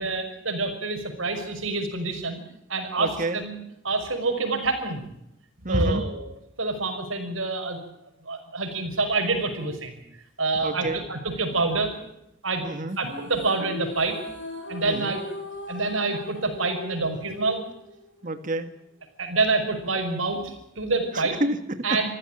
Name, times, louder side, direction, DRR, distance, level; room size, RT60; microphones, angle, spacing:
voice 1, 0.0-2.4 2.7-3.6 3.8-5.1 5.7-6.3 6.6-7.8 8.2-10.0 10.4-12.0 12.4-12.6 13.0-14.2 14.7-15.2 15.7-17.6 19.2-21.4 21.8-22.1, right 3 dB, 90° right, 5 dB, 5.8 m, -27 dB
voice 2, 3.0-3.4 5.6-6.0 10.6-11.0 12.6-13.0 14.8-15.2 18.2-18.7 21.1-22.0, right 1 dB, 40° right, 9 dB, 1.7 m, -29 dB
sound 1, 12.9-18.4, left 1 dB, 65° left, 7.5 m, -39 dB
26.5 x 15.0 x 9.0 m, 0.80 s
head